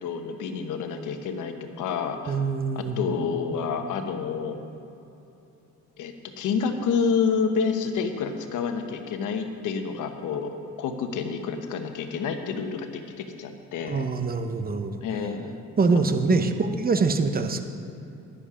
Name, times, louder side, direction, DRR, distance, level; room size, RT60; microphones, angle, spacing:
voice 1, 0.0-2.4 2.7-4.6 6.0-10.5 10.8-14.0 15.0-15.5 15.9-16.0 16.3-16.6, left 6 dB, 85° left, 6 dB, 1.1 m, -29 dB
voice 2, 2.3-3.0 13.9-15.0 15.8-17.6, right 4 dB, 30° right, 8 dB, 0.9 m, -24 dB
11.5 x 11.0 x 5.0 m, 2.8 s
cardioid pair, 90°, 30 cm